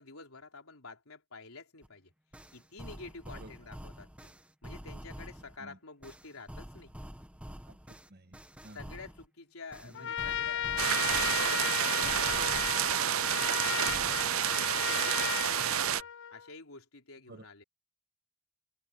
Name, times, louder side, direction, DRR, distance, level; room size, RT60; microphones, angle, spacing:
voice 1, 0.0-2.1 2.5-4.3 4.6-6.9 8.7-12.7 13.0-14.2 14.7-17.6, left 4 dB, 90° left, 3.8 m, -49 dB
sound 1, 1.8-1.9 2.3-5.6 6.0-9.3 9.7-12.9 13.4-14.3, equal, 5° right, 1.7 m, -47 dB
voice 2, 7.7-9.0 9.8-10.1 15.6-15.8 17.3-17.4, right 2 dB, 50° right, 1.7 m, -52 dB
Trumpet, 9.9-16.5, left 9 dB, 60° left, 0.7 m, -35 dB
sound 2, 10.8-16.0, right 11 dB, 70° right, 0.5 m, -29 dB
head